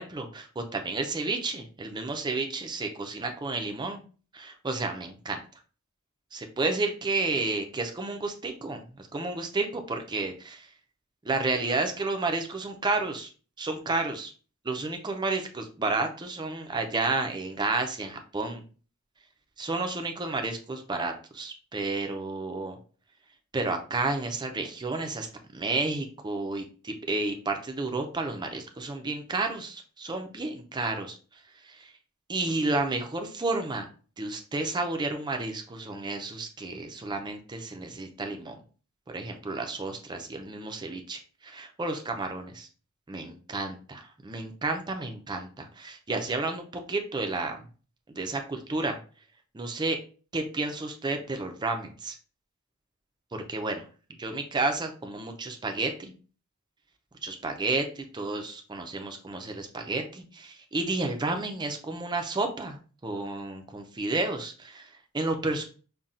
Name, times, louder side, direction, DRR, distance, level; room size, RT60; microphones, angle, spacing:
voice 1, 0.0-4.0 4.3-5.4 6.3-10.7 11.2-13.3 13.6-14.3 14.6-18.6 19.6-22.8 23.5-25.3 25.5-31.9 32.3-33.9 34.2-38.6 39.1-42.7 43.1-47.6 48.1-49.0 49.5-50.0 50.3-52.2 53.3-53.8 54.2-56.1 57.2-65.6, right 3 dB, 20° right, 5 dB, 0.4 m, -31 dB
5.5 x 2.2 x 2.5 m, 0.38 s
head